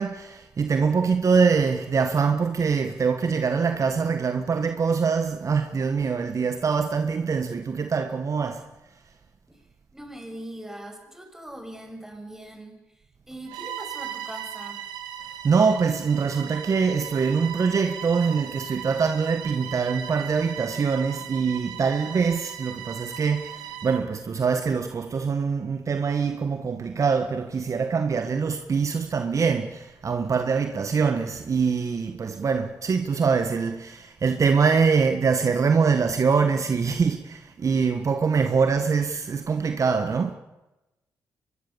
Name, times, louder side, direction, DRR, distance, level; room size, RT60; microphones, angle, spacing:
voice 1, 0.0-8.7 15.4-40.3, right 5 dB, 50° right, 1.6 m, -24 dB
voice 2, 9.9-13.0 13.3-14.9, right 1 dB, 5° right, 6.6 m, -41 dB
Bowed string instrument, 13.5-24.1, right 10 dB, 85° right, 2.2 m, -38 dB
24.5 x 21.5 x 7.2 m
hypercardioid pair, 45°, 7 cm